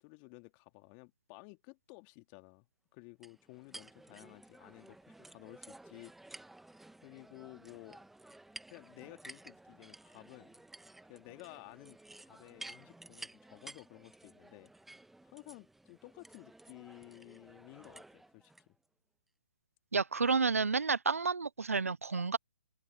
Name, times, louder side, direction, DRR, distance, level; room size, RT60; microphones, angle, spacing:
voice 1, 0.0-2.7 2.9-6.1 7.0-8.0 8.7-10.5 11.1-14.7 15.2-18.8, left 31 dB, 30° left, 2.2 m, -54 dB
sound 1, 3.2-18.7, right 2 dB, 5° right, 1.5 m, -54 dB
voice 2, 19.9-22.4, right 4 dB, 85° right, 0.5 m, -30 dB
hypercardioid pair, 135°, 8 cm